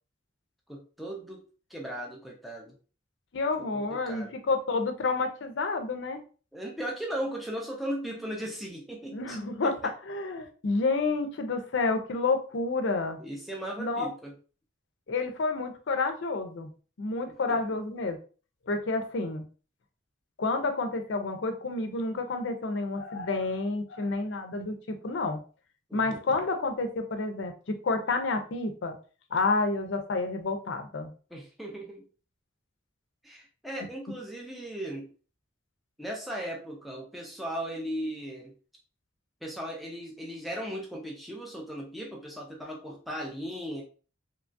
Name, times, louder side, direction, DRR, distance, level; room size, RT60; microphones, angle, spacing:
voice 1, 0.7-1.4 1.7-2.7 3.9-4.4 6.5-9.9 13.2-14.3 17.5-17.6 25.9-26.2 31.3-32.0 33.2-35.1 36.0-38.5 39.4-43.8, equal, ahead, -2 dB, 0.4 m, -37 dB
voice 2, 3.3-6.2 9.1-13.2 13.8-14.1 15.1-16.7 17.0-18.2 18.7-19.4 20.4-25.4 25.9-29.0 29.3-31.1, left 3 dB, 60° left, 6 dB, 0.5 m, -29 dB
2.9 x 2.3 x 2.5 m, 0.38 s
head